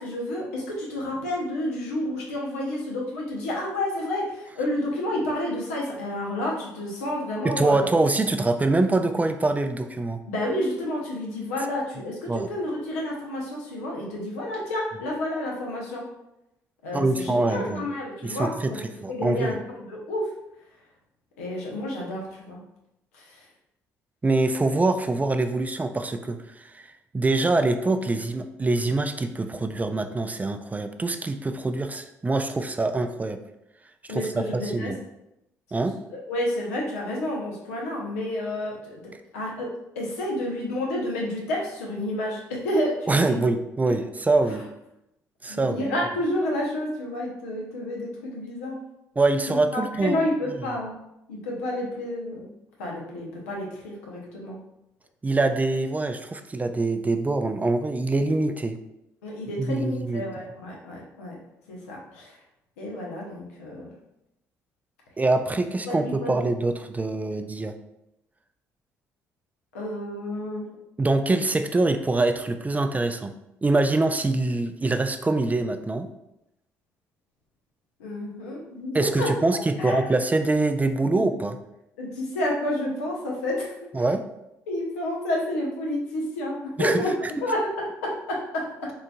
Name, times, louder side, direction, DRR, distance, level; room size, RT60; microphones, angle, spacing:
voice 1, 0.0-7.9 10.3-16.0 16.8-18.5 19.1-20.3 21.4-22.6 34.1-34.9 36.1-39.0 39.3-39.7 40.0-43.5 45.5-48.8 49.5-50.9 51.3-52.5 52.8-54.6 59.2-61.3 61.7-62.3 62.8-63.9 65.9-66.4 69.7-70.7 78.0-79.3 79.8-80.1 81.1-81.2 82.0-83.7 84.7-87.1 87.4-88.9, left 1 dB, 90° left, -2 dB, 0.7 m, -30 dB
voice 2, 7.4-10.2 12.3-12.5 16.9-17.9 18.2-19.5 24.2-26.8 27.1-33.4 34.1-35.0 35.7-36.0 43.1-44.7 45.4-45.9 49.2-50.6 55.2-58.8 59.6-60.3 65.2-67.7 71.0-73.3 73.6-76.1 78.9-81.6 83.9-84.2 86.8-87.0, right 2 dB, 20° right, 8 dB, 0.3 m, -24 dB
3.8 x 2.6 x 2.2 m, 0.86 s
hypercardioid pair, 50°, 8 cm